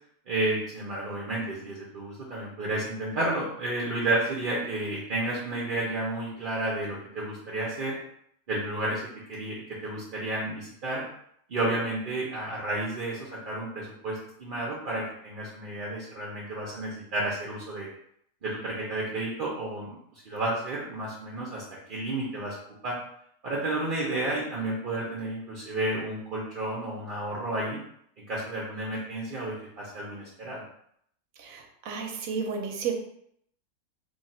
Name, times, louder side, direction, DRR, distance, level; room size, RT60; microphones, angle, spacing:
voice 1, 0.3-8.0 8.5-9.0 9.3-11.0 11.5-17.9 18.4-21.6 21.9-22.5 22.8-23.0 23.4-27.8 28.3-30.6, right 2 dB, 50° right, -4 dB, 0.7 m, -31 dB
voice 2, 31.4-32.9, right 6 dB, 70° right, 2 dB, 1.0 m, -32 dB
3.2 x 2.4 x 4.2 m, 0.70 s
omnidirectional pair, 1.6 m